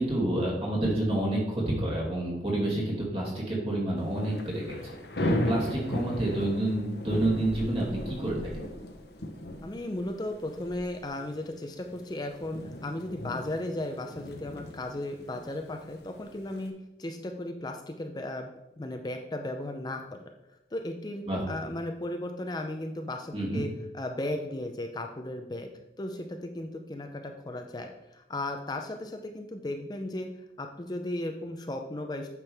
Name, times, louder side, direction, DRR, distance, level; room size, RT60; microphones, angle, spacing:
voice 1, 0.0-8.7 21.3-21.4 23.3-23.6, right 1 dB, 35° right, -4 dB, 2.4 m, -29 dB
Thunder / Rain, 4.0-16.7, left 1 dB, 65° left, 0.9 m, -37 dB
voice 2, 9.6-18.5 18.8-20.3 20.7-23.7 23.9-25.7 26.0-30.3 30.6-32.3, left 1 dB, 25° left, 5 dB, 0.5 m, -35 dB
8.9 x 6.0 x 3.4 m, 0.89 s
head